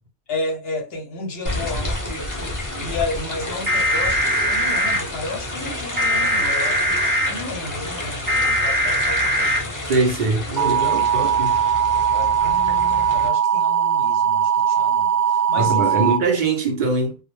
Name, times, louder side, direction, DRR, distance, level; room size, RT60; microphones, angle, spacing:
voice 1, 0.3-9.8 10.8-11.0 12.1-16.1, left 2 dB, 50° left, 0.8 m, -32 dB
sound 1, 1.4-13.3, left 2 dB, 25° left, 0.4 m, -30 dB
sound 2, 3.7-5.0 6.0-7.3 8.3-9.6 10.6-16.2, right 4 dB, 20° right, 0.6 m, -20 dB
voice 2, 9.9-11.6 15.6-17.2, right 3 dB, 70° right, 0.4 m, -22 dB
2.3 x 2.0 x 3.0 m
omnidirectional pair, 1.5 m